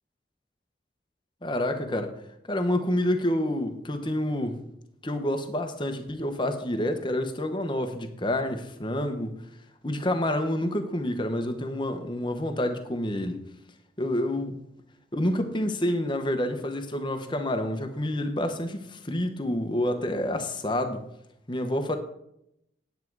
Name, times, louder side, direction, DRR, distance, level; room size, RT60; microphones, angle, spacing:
voice 1, 1.4-2.2 2.5-4.6 5.0-9.4 9.8-13.4 14.0-14.6 15.1-21.0 21.5-22.0, left 1 dB, 25° left, 1.1 m, -28 dB
9.5 x 9.3 x 4.7 m
head